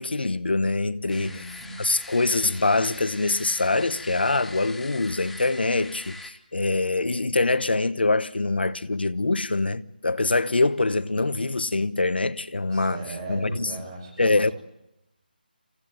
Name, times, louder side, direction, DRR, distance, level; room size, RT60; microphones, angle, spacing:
voice 1, 0.0-1.4 1.8-13.0 13.3-13.7 14.2-14.5, left 3 dB, 90° left, 1.2 m, -24 dB
sound 1, 1.1-6.3, left 3 dB, ahead, 0.8 m, -42 dB
voice 2, 1.1-1.9 12.7-14.5, right 2 dB, 25° right, 6.8 m, -37 dB
27.5 x 16.0 x 9.1 m
figure-of-eight pair, 165°, 5 cm